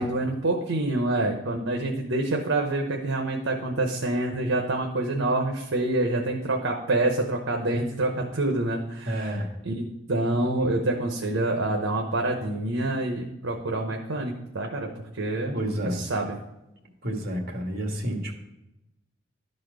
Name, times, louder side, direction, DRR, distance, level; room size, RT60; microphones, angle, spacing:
voice 1, 0.0-14.9 15.1-16.3, right 2 dB, 85° right, 2 dB, 0.9 m, -27 dB
voice 2, 9.0-9.5 15.5-16.0 17.0-18.4, right 1 dB, 55° right, 2 dB, 1.6 m, -29 dB
12.0 x 4.3 x 4.9 m, 0.91 s
head